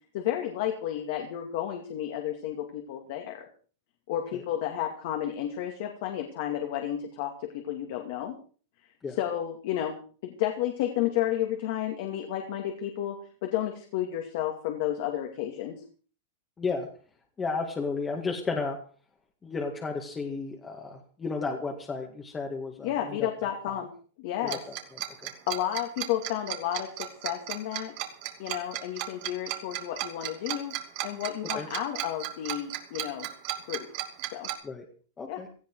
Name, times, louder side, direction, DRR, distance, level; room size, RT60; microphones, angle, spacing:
voice 1, 0.1-3.5 4.1-8.4 9.2-9.9 10.2-13.2 13.4-15.8 22.8-23.9 24.2-24.6 25.5-28.0 28.4-30.7 31.0-33.3 33.7-33.9 34.3-34.5 35.3-35.4, left 11 dB, 55° left, 3 dB, 2.6 m, -31 dB
voice 2, 16.6-16.9 17.4-18.8 19.4-23.3 23.7-23.8 24.4-24.6 25.2-25.3 31.5-31.7 34.6-34.8 35.2-35.5, left 4 dB, 15° left, 1 dB, 2.1 m, -33 dB
Tick-tock, 24.5-34.5, right 14 dB, 45° right, 2.7 m, -34 dB
17.5 x 14.5 x 4.9 m, 0.42 s
supercardioid pair, 155°, 0 cm